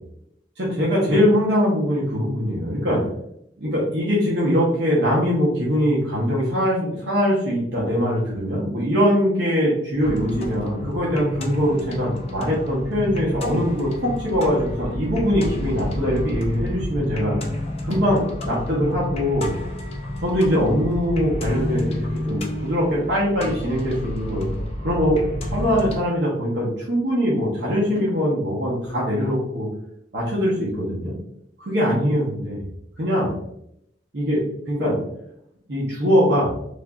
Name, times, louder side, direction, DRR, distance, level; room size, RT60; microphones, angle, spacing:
voice 1, 0.6-3.0 3.6-17.4 17.8-19.5 20.2-24.5 24.8-29.7 30.1-31.1 31.6-32.6 33.0-33.3 34.1-34.4 34.7-35.0 35.7-36.5, equal, 70° right, -6 dB, 0.8 m, -22 dB
sound 1, 10.0-26.0, left 1 dB, 35° left, 0.4 m, -29 dB
3.2 x 2.5 x 2.3 m, 0.78 s
head